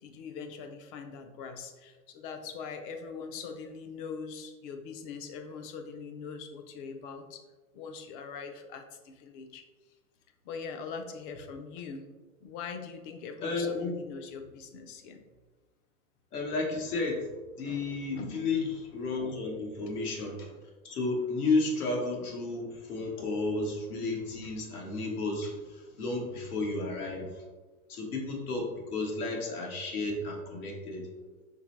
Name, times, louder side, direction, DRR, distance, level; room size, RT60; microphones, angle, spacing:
voice 1, 0.0-7.4 7.7-9.6 10.4-12.1 12.4-15.2 18.2-18.4, left 5 dB, 40° left, 7 dB, 0.5 m, -42 dB
voice 2, 13.4-14.0 16.3-20.6 20.8-27.4 27.9-31.1, left 3 dB, 85° left, 0 dB, 1.3 m, -32 dB
5.2 x 3.1 x 3.1 m, 1.3 s
hypercardioid pair, 130°, 44 cm